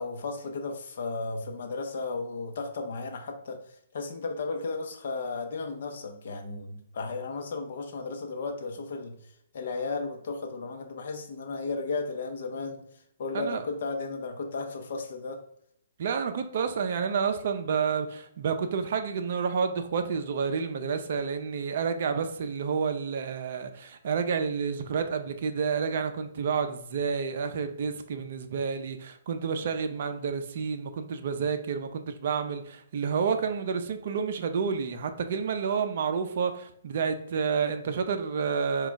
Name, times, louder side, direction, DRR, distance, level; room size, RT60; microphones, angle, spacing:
voice 1, 0.0-9.2 9.5-12.8 13.2-15.4, left 3 dB, 55° left, 4 dB, 0.8 m, -34 dB
voice 2, 16.0-38.9, right 6 dB, 50° right, 8 dB, 0.5 m, -29 dB
4.6 x 2.4 x 3.9 m, 0.71 s
figure-of-eight pair, 125°, 0 cm